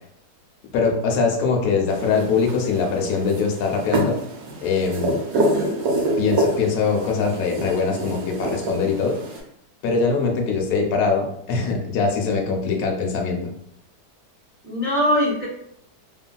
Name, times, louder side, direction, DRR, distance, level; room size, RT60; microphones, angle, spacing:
voice 1, 0.7-4.2 4.6-5.2 6.2-9.2 9.8-13.5, left 4 dB, 65° left, 1 dB, 1.0 m, -22 dB
sound 1, 1.9-9.4, right 1 dB, 75° right, 1.2 m, -27 dB
voice 2, 5.3-5.9 14.6-15.5, equal, 10° right, -7 dB, 0.5 m, -23 dB
2.9 x 2.6 x 2.2 m, 0.72 s
omnidirectional pair, 1.8 m